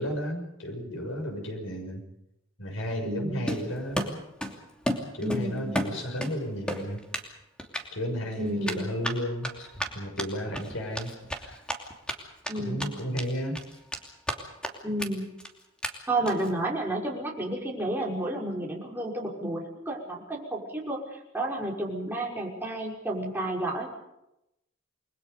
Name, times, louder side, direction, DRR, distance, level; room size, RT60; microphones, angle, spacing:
voice 1, 0.0-2.0 2.6-4.2 5.1-7.0 7.9-9.7 9.9-11.6 12.5-13.6, equal, 75° left, 3 dB, 6.5 m, -33 dB
voice 2, 3.0-3.5 5.2-5.7 8.4-8.9 12.5-12.9 14.8-15.2 16.1-23.9, right 1 dB, 10° right, -3 dB, 5.7 m, -31 dB
Run, 3.5-4.6 4.9-6.3 6.7-7.3 7.6-7.8 8.6-12.1 12.4-12.5 12.8-13.3 13.6-14.4 14.6-14.7 15.0-15.1 15.4-15.5 15.8-15.9 16.3-16.5, equal, 5° left, 2.8 m, -32 dB
29.5 x 21.5 x 5.3 m, 0.87 s
head